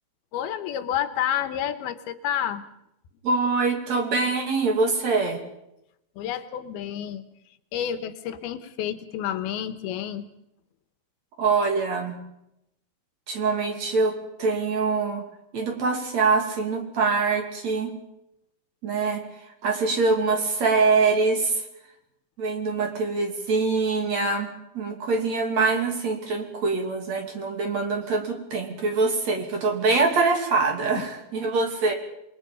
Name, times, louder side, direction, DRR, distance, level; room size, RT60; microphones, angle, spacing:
voice 1, 0.3-2.7 6.2-7.2 7.7-10.3 31.0-31.1, left 10 dB, 85° left, 11 dB, 3.0 m, -29 dB
voice 2, 3.2-5.4 11.4-12.2 13.3-15.2 15.5-17.9 18.8-19.2 19.6-21.6 22.4-31.9, right 4 dB, 50° right, 3 dB, 3.6 m, -24 dB
27.5 x 22.0 x 5.3 m, 0.83 s
omnidirectional pair, 4.4 m